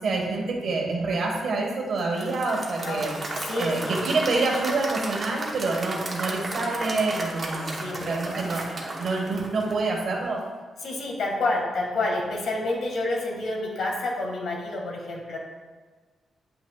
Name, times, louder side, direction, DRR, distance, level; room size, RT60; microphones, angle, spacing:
voice 1, 0.0-3.1 3.6-8.7 9.0-10.4, right 3 dB, 55° right, 0 dB, 1.3 m, -27 dB
Applause / Crowd, 2.0-10.2, right 2 dB, 25° right, 1.0 m, -34 dB
voice 2, 3.4-4.1 7.8-8.1 10.8-15.4, left 2 dB, 65° left, -1 dB, 1.7 m, -29 dB
9.8 x 6.0 x 2.3 m, 1.4 s
wide cardioid pair, 165°, 0 cm